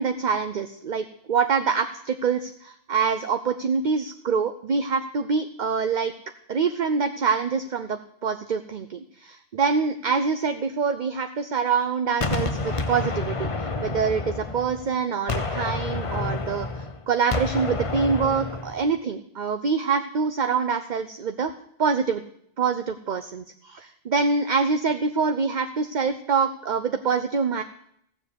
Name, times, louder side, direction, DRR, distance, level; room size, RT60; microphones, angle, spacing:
voice 1, 0.0-6.1 6.5-21.5 21.8-22.2 22.6-27.6, right 5 dB, 50° right, 8 dB, 0.8 m, -25 dB
Gunshot gunfire, 12.2-14.9 15.3-18.8, left 3 dB, 30° left, 0.9 m, -29 dB
15.5 x 7.4 x 8.2 m, 0.69 s
omnidirectional pair, 1.1 m